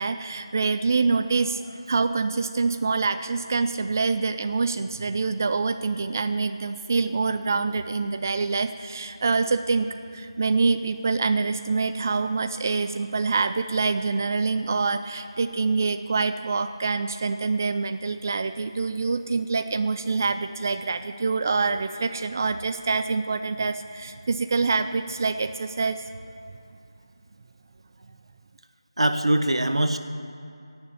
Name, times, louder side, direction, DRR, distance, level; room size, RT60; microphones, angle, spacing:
voice 1, 0.0-1.6 1.9-26.0, right 4 dB, 35° right, 9 dB, 0.4 m, -25 dB
voice 2, 29.0-30.0, right 1 dB, 90° right, 8 dB, 1.2 m, -22 dB
16.0 x 7.0 x 8.8 m, 2.5 s
figure-of-eight pair, 170°, 3 cm